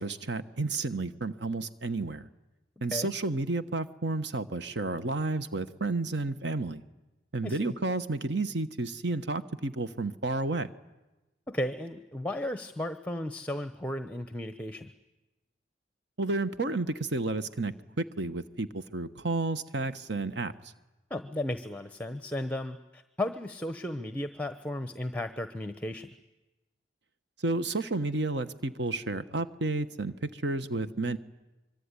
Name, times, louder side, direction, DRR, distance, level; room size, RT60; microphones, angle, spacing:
voice 1, 0.0-2.3 2.8-6.8 7.3-10.7 16.2-20.5 27.4-31.2, right 2 dB, 65° right, 11 dB, 1.3 m, -31 dB
voice 2, 7.4-7.8 11.5-14.9 21.1-26.1, left 1 dB, 10° left, 10 dB, 0.9 m, -35 dB
25.5 x 23.5 x 9.9 m, 1.1 s
head